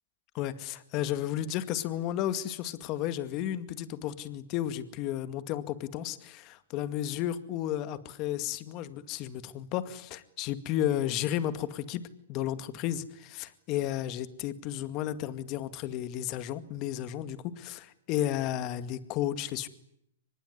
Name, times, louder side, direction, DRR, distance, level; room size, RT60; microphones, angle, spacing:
voice 1, 0.3-12.0 12.3-19.7, left 12 dB, 35° left, 12 dB, 2.1 m, -33 dB
24.5 x 21.0 x 9.9 m, 0.75 s
hypercardioid pair, 140°, 0 cm